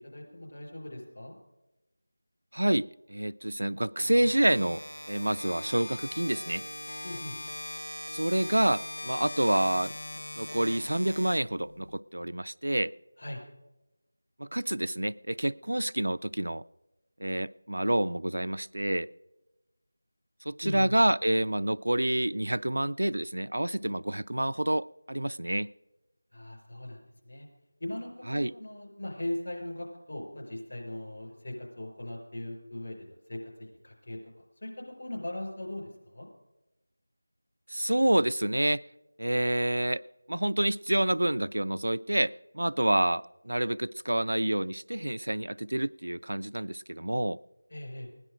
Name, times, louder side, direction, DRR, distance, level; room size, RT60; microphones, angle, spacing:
voice 1, 0.0-1.3 7.0-7.3 13.2-13.4 20.6-20.9 26.3-27.5 27.8-34.2 34.6-34.7 35.0-36.3 47.7-48.1, left 1 dB, 55° left, 4.9 m, -39 dB
voice 2, 2.5-4.8 5.1-6.6 8.1-9.9 10.4-12.9 14.4-16.6 17.2-19.1 20.5-25.7 28.3-28.5 37.7-38.8 39.2-40.0 40.3-47.4, right 1 dB, 75° right, 0.3 m, -28 dB
sound 1, 4.0-12.0, left 1 dB, 85° left, 0.5 m, -41 dB
16.5 x 10.5 x 5.0 m
figure-of-eight pair, 170°, 0 cm